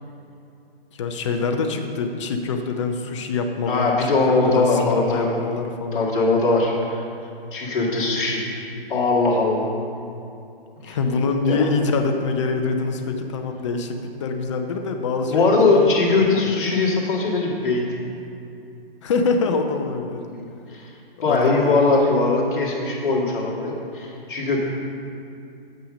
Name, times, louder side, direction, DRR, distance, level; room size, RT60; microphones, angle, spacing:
voice 1, 0.9-3.9 4.3-6.1 10.8-15.9 19.0-20.2 21.2-21.8, left 4 dB, 30° left, 5 dB, 0.6 m, -25 dB
voice 2, 3.7-5.6 5.9-7.0 7.5-8.4 8.9-9.6 10.8-10.9 11.5-11.7 15.3-17.8 20.3-20.9 21.2-24.6, left 3 dB, 55° left, -3 dB, 2.2 m, -20 dB
9.0 x 6.4 x 5.2 m, 2.6 s
hypercardioid pair, 150°, 30 cm